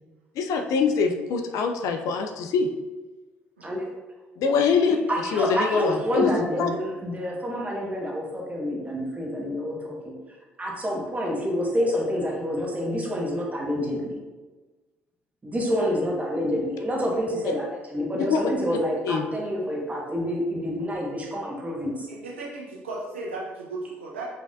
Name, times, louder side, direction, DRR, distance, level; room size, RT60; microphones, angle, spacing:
voice 1, 0.4-2.7 4.4-5.0 5.3-6.3 6.6-6.7 18.3-18.4 19.0-19.3, left 5 dB, 60° left, 5 dB, 0.4 m, -23 dB
voice 2, 5.1-10.1 10.6-14.2 15.4-22.1, equal, 25° right, -2 dB, 1.4 m, -28 dB
voice 3, 22.1-24.2, right 2 dB, 85° right, -3 dB, 0.7 m, -35 dB
5.1 x 3.4 x 2.6 m, 1.2 s
hypercardioid pair, 50°, 6 cm